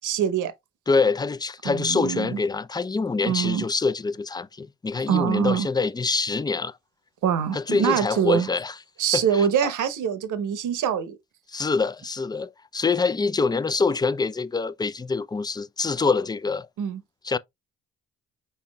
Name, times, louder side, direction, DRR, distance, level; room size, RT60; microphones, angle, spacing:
voice 1, 0.0-0.5 1.6-2.4 3.2-3.6 5.1-5.7 7.2-8.5 9.0-11.2 16.8-17.0, right 8 dB, 60° right, 0.9 m, -24 dB
voice 2, 0.9-6.8 7.5-8.8 9.1-9.5 11.5-16.7 17.2-17.4, left 4 dB, 10° left, 0.4 m, -25 dB
5.5 x 4.2 x 2.3 m
hypercardioid pair, 50°, 34 cm